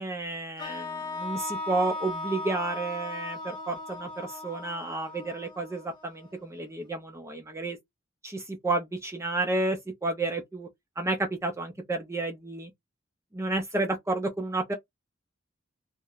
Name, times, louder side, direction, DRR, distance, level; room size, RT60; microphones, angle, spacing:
voice 1, 0.0-7.8 8.2-10.7 11.0-12.7 13.3-14.7, right 2 dB, 15° right, 0.5 m, -31 dB
sound 1, 0.6-6.6, left 2 dB, 25° left, 1.0 m, -37 dB
2.8 x 2.2 x 2.4 m
head